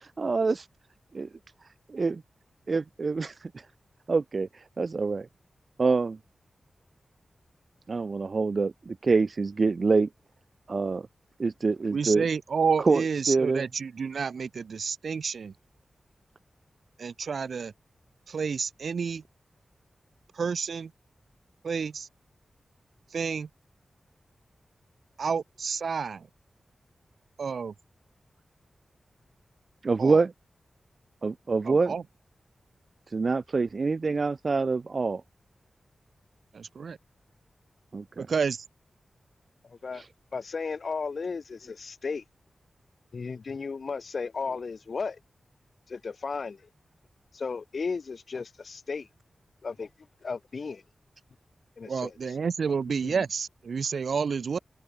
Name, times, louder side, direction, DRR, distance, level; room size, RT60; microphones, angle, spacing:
voice 1, 0.2-0.6 1.1-1.3 1.9-2.2 2.7-3.3 4.1-4.5 4.8-5.3 5.8-6.2 7.9-10.1 10.7-11.1 11.4-12.2 12.8-13.7 29.8-30.3 31.2-32.0 33.1-35.2 37.9-38.3, right 4 dB, 45° right, 0.9 m, -25 dB
voice 2, 11.9-15.5 17.0-17.7 18.3-19.2 20.3-20.9 21.6-22.1 23.1-23.5 25.2-26.3 27.4-27.7 30.0-30.2 31.6-32.0 36.5-37.0 38.2-38.6 51.8-54.6, right 5 dB, 75° right, 1.5 m, -30 dB
voice 3, 39.6-40.0 40.3-42.2 43.1-45.2 45.9-46.6 47.3-49.1 49.6-49.9 50.2-50.8 51.8-52.3 53.0-53.2, left 4 dB, 60° left, 4.3 m, -35 dB
wide cardioid pair, 115°, 0 cm